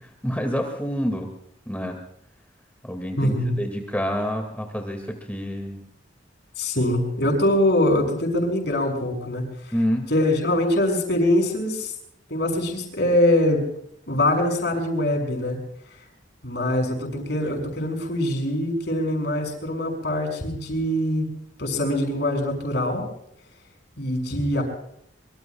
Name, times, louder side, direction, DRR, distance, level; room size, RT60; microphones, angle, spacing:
voice 1, 0.2-1.3 1.7-2.0 2.8-5.8 9.7-10.1, equal, 10° left, 4 dB, 2.1 m, -27 dB
voice 2, 3.2-3.6 6.6-9.7 10.1-11.9 12.3-13.7 14.1-15.6 16.4-21.3 21.6-23.0 24.0-24.6, left 1 dB, 65° left, 3 dB, 6.2 m, -23 dB
25.5 x 24.0 x 2.4 m, 0.72 s
head